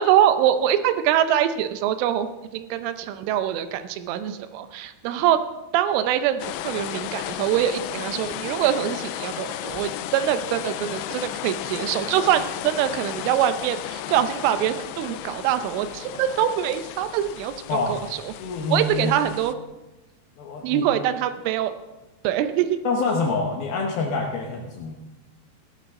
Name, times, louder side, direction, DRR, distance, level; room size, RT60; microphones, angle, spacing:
voice 1, 0.0-5.4 5.7-18.3 18.7-19.5 20.6-21.7 22.2-22.8, right 10 dB, 85° right, 10 dB, 3.3 m, -24 dB
sound 1, 6.4-19.5, left 13 dB, 90° left, 2.5 m, -34 dB
voice 2, 18.4-19.1 20.4-20.8 22.8-24.9, left 4 dB, 70° left, 1 dB, 2.3 m, -26 dB
16.5 x 12.5 x 3.7 m, 1.0 s
omnidirectional pair, 5.5 m